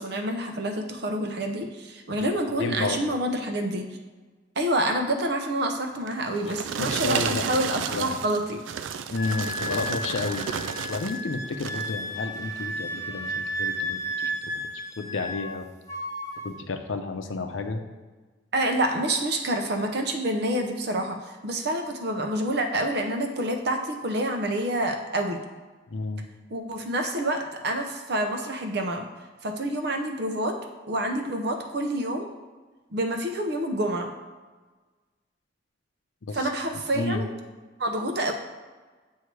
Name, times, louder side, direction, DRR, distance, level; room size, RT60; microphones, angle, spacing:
voice 1, 0.0-3.9 4.6-8.6 18.5-25.4 26.5-29.0 29.4-30.6 30.9-32.3 32.9-34.1 36.3-37.3 37.8-38.3, right 1 dB, 60° right, 4 dB, 0.7 m, -27 dB
voice 2, 2.6-3.0 6.5-7.4 7.9-8.2 9.1-10.5 10.9-14.3 15.0-15.7 16.4-17.8 25.9-26.2 36.2-36.5 36.9-37.3, left 3 dB, 85° left, 6 dB, 0.6 m, -31 dB
sound 1, 6.1-11.2 11.5-12.0 12.5-12.7, right 7 dB, 85° right, 0.4 m, -32 dB
Wind instrument woodwind instrument, 9.2-15.6 15.9-16.5, equal, 15° left, 0.6 m, -33 dB
8.1 x 2.8 x 4.6 m, 1.3 s
head